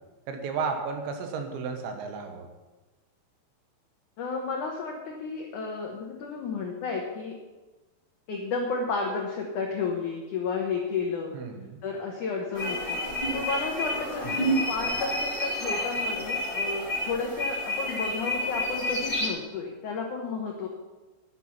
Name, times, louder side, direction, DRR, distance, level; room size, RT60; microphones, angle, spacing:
voice 1, 0.3-2.5 11.3-11.8 14.2-14.5, right 5 dB, 75° right, 5 dB, 3.5 m, -33 dB
voice 2, 4.2-7.4 8.3-11.3 11.8-13.0 13.3-20.7, left 4 dB, 75° left, 0 dB, 1.8 m, -32 dB
sound 1, 12.5-19.3, left 1 dB, 45° left, 0.6 m, -29 dB
12.0 x 9.1 x 5.8 m, 1.2 s
omnidirectional pair, 5.3 m